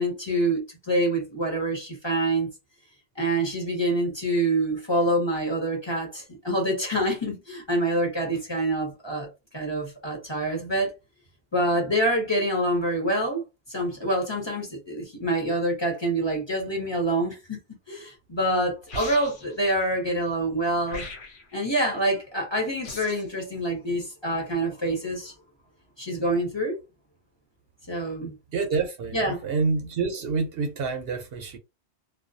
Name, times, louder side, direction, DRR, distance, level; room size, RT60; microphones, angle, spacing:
voice 1, 0.0-2.5 3.2-9.3 9.5-10.9 11.5-13.4 13.7-17.6 17.9-21.1 21.5-25.3 26.0-26.7 27.9-28.3 29.1-29.4, right 1 dB, 25° left, 0.9 m, -26 dB
sound 1, 18.9-19.6 20.9-21.6 22.8-23.3, left 2 dB, 75° left, 1.1 m, -39 dB
voice 2, 28.5-31.6, right 4 dB, 65° right, 0.8 m, -27 dB
2.3 x 2.3 x 2.5 m
omnidirectional pair, 1.1 m